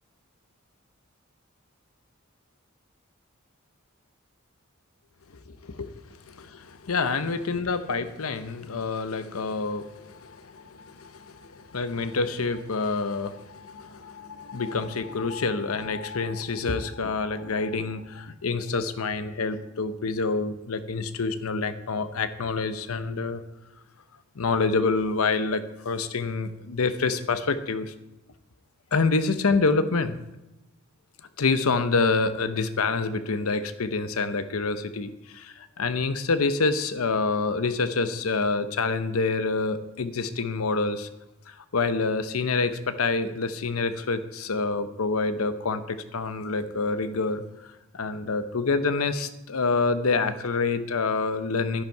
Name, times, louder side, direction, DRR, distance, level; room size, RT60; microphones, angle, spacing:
voice 1, 5.5-23.4 24.4-27.9 28.9-30.2 31.4-41.1 41.5-47.4 47.9-51.8, left 4 dB, 85° left, 11 dB, 0.8 m, -27 dB
12.0 x 11.0 x 4.6 m, 1.0 s
head